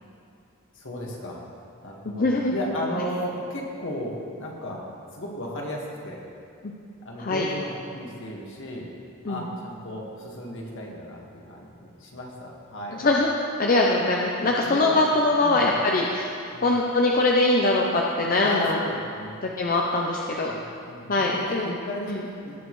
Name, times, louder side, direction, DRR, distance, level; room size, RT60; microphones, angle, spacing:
voice 1, 0.8-1.4 1.8-4.8 5.1-6.2 7.0-8.9 9.3-11.2 11.5-13.0 14.4-15.7 16.5-16.7 18.4-19.4 20.4-22.6, left 1 dB, 65° left, -2 dB, 1.7 m, -35 dB
voice 2, 2.1-2.5 3.0-3.1 7.2-7.5 9.2-9.4 12.9-13.3 13.6-16.3 16.6-18.8 19.4-20.5 21.1-21.7 22.1-22.2, left 2 dB, 40° left, -1 dB, 0.7 m, -22 dB
18.0 x 6.5 x 3.2 m, 2.4 s
head